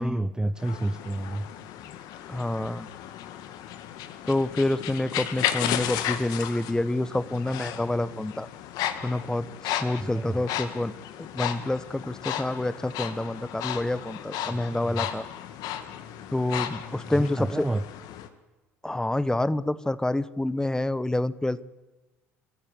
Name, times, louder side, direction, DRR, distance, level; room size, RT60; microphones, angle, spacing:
voice 1, 0.0-1.5 10.0-10.4 14.5-14.6 14.8-15.1 17.1-17.8, right 2 dB, 10° right, 14 dB, 0.7 m, -30 dB
sound 1, 0.6-18.3, left 11 dB, 60° left, 1.8 m, -34 dB
voice 2, 2.3-2.9 4.3-8.5 9.0-10.9 11.3-15.3 16.3-17.7 18.8-21.6, left 1 dB, 10° left, 17 dB, 1.1 m, -28 dB
28.0 x 14.5 x 10.0 m, 1.2 s
figure-of-eight pair, 60°, 7 cm